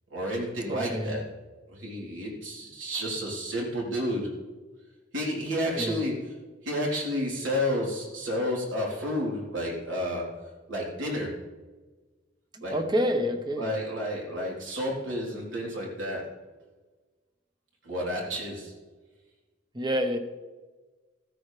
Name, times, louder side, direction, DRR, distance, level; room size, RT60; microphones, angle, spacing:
voice 1, 0.1-1.2 1.7-4.4 5.1-6.3 6.6-11.4 12.6-12.8 13.6-16.3 17.8-18.8, equal, 75° right, -3 dB, 3.7 m, -31 dB
voice 2, 0.7-1.2 5.7-6.0 12.5-13.7 19.7-20.2, equal, 25° right, 7 dB, 1.0 m, -28 dB
14.5 x 13.5 x 3.3 m, 1.3 s
head